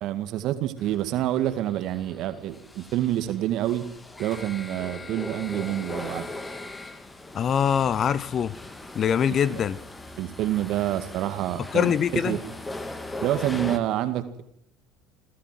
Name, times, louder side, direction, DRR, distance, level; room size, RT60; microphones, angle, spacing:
voice 1, 0.0-3.9 4.2-6.3 9.5-9.6 10.2-12.4 13.2-14.4, right 13 dB, 55° right, 2.1 m, -27 dB
sound 1, 0.8-13.8, left 2 dB, 15° left, 2.3 m, -39 dB
voice 2, 7.3-8.5 8.9-9.8 11.7-12.4, left 8 dB, 40° left, 0.9 m, -23 dB
29.5 x 13.0 x 7.7 m
hypercardioid pair, 70°, 0 cm